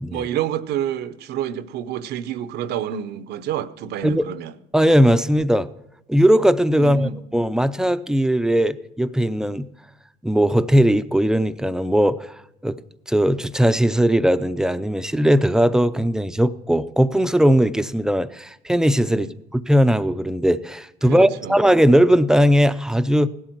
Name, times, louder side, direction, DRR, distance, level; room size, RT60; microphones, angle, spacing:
voice 1, 0.1-4.5 6.8-7.1 19.1-19.3 21.1-21.6, right 10 dB, 75° right, 13 dB, 0.8 m, -28 dB
voice 2, 4.7-5.7 6.1-9.7 10.2-12.3 12.6-12.8 13.1-23.3, equal, 5° right, 12 dB, 0.5 m, -18 dB
16.5 x 12.0 x 4.6 m, 0.84 s
cardioid pair, 110°, 17 cm